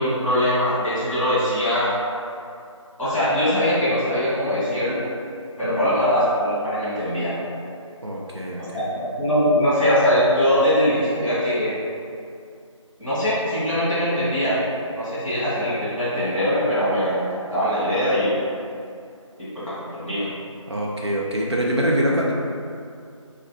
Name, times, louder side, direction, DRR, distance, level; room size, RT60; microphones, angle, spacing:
voice 1, 0.0-2.0 3.0-5.1 5.6-7.3 8.6-11.7 13.0-14.6 14.9-18.4 19.4-20.3, equal, ahead, -25 dB, 0.9 m, -22 dB
voice 2, 8.0-8.9 20.7-22.3, equal, 55° right, -3 dB, 0.5 m, -24 dB
3.1 x 2.5 x 4.2 m, 2.4 s
figure-of-eight pair, 165°, 17 cm